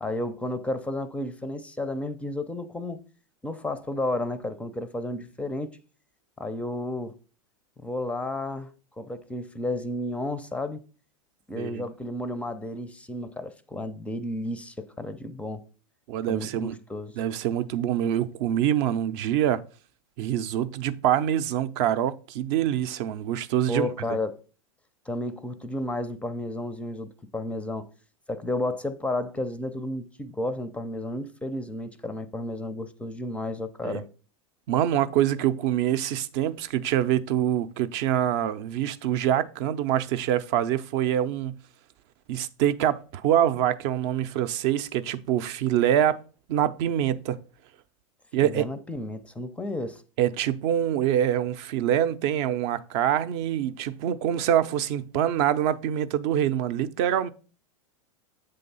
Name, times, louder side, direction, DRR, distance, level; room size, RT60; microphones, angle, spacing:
voice 1, 0.0-3.0 3.4-5.7 6.4-7.2 7.8-10.8 11.5-15.7 16.3-17.2 23.7-24.4 25.1-27.9 28.3-34.1 48.4-50.0, left 1 dB, 5° left, 0.5 m, -32 dB
voice 2, 16.1-16.8 17.2-19.6 20.2-23.9 33.8-34.0 34.7-41.6 42.3-46.2 46.5-47.4 48.3-48.7 50.2-57.3, right 11 dB, 55° right, 0.6 m, -25 dB
7.7 x 3.4 x 5.4 m
hypercardioid pair, 120°, 18 cm